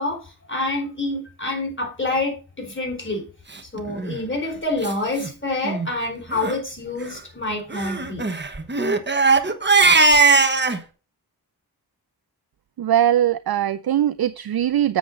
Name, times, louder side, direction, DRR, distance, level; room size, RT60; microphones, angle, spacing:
voice 1, 0.0-3.3 3.7-8.3, left 2 dB, 30° left, 1 dB, 4.1 m, -27 dB
Crying sobbing, 3.9-4.2 4.8-4.9 5.2-5.3 5.6-5.9 6.3-6.6 7.7-10.8, right 3 dB, 25° right, 1.2 m, -19 dB
voice 2, 12.8-15.0, right 11 dB, 65° right, 15 dB, 0.5 m, -20 dB
7.8 x 6.9 x 3.8 m, 0.35 s
wide cardioid pair, 65°, 39 cm